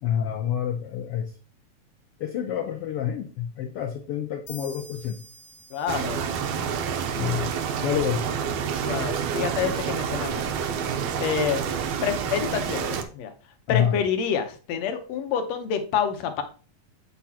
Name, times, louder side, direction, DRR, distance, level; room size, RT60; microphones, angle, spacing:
voice 1, 0.0-1.3 2.2-5.2 7.2-7.5 7.8-8.2 13.7-14.0, left 9 dB, 85° left, 4 dB, 1.2 m, -27 dB
sound 1, 4.5-8.1, right 1 dB, 50° left, 1.1 m, -49 dB
voice 2, 5.7-6.2 8.9-10.4 11.2-11.6 12.0-13.3 13.7-16.4, left 7 dB, 70° left, 7 dB, 2.0 m, -27 dB
sound 2, 5.9-13.0, right 7 dB, 75° right, 2.0 m, -28 dB
8.1 x 6.2 x 2.8 m, 0.38 s
omnidirectional pair, 3.5 m